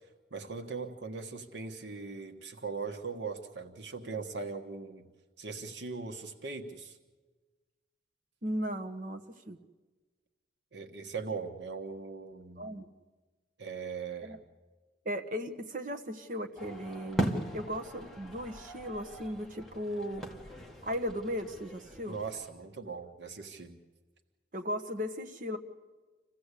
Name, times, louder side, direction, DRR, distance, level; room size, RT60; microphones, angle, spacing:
voice 1, 0.3-5.1 5.4-7.0 10.7-12.8 13.6-14.4 22.1-23.8, right 4 dB, 80° right, 5 dB, 1.5 m, -40 dB
voice 2, 8.4-9.6 12.6-12.9 14.2-14.4 15.0-20.3 20.8-22.2 24.5-25.6, equal, 45° right, 7 dB, 1.2 m, -37 dB
sound 1, 16.6-22.5, right 1 dB, ahead, 1.8 m, -39 dB
27.0 x 15.5 x 8.3 m, 1.3 s
head